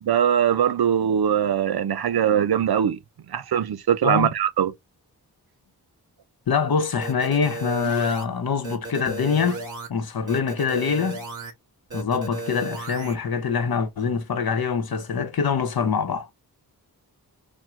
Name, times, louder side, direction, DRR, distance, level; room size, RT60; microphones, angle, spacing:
voice 1, 0.0-3.0 3.3-4.7, right 9 dB, 70° right, 0.6 m, -21 dB
voice 2, 6.5-9.6 9.9-11.2 11.9-16.3, left 6 dB, 65° left, 0.9 m, -24 dB
sound 1, 7.0-8.2 8.6-9.9 10.3-11.5 11.9-13.1, right 3 dB, 50° right, 2.4 m, -34 dB
4.4 x 2.2 x 3.6 m
wide cardioid pair, 105°, 39 cm